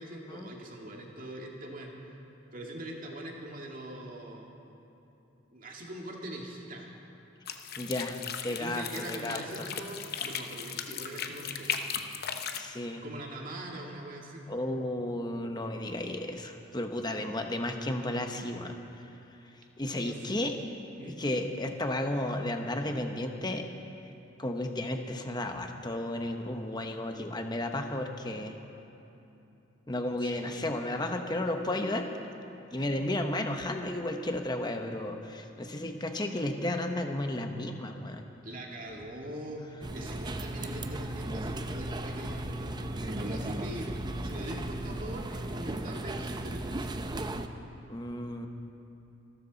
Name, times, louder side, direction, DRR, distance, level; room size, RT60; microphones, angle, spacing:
voice 1, 0.0-2.1 2.5-4.5 5.5-6.9 8.4-12.2 13.0-14.5 19.8-20.3 21.0-21.2 30.2-30.7 38.4-39.7 39.9-47.0, right 1 dB, 45° right, -1 dB, 2.1 m, -42 dB
sound 1, 7.5-12.6, left 7 dB, 50° left, 0.8 m, -37 dB
voice 2, 7.8-9.7 12.5-13.0 14.5-18.7 19.8-20.6 21.0-23.7 24.4-28.5 29.9-32.1 32.7-38.2 47.9-48.5, left 1 dB, 20° left, 5 dB, 1.0 m, -33 dB
sound 2, 39.8-47.5, right 1 dB, 20° right, 0.6 m, -36 dB
26.5 x 13.0 x 4.1 m, 2.9 s
head